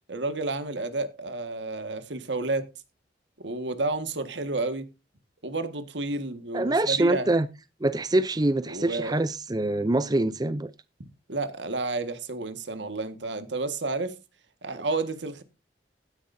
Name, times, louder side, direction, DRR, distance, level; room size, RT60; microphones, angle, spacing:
voice 1, 0.1-2.7 3.4-4.9 5.4-7.3 8.7-9.2 11.0-14.2 14.6-15.4, right 2 dB, 80° right, 1.8 m, -31 dB
voice 2, 6.5-7.5 7.8-10.7, right 2 dB, 20° right, 0.6 m, -24 dB
16.0 x 9.8 x 2.7 m
head